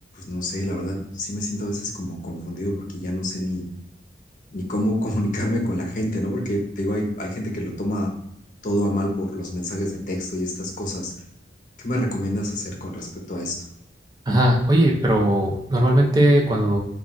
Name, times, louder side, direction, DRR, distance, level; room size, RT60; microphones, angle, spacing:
voice 1, 0.1-3.6 4.5-8.1 8.6-11.1 11.8-13.6, equal, 45° left, 0 dB, 0.6 m, -27 dB
voice 2, 14.3-16.8, right 1 dB, 20° right, -1 dB, 0.5 m, -18 dB
2.3 x 2.3 x 3.8 m, 0.79 s
head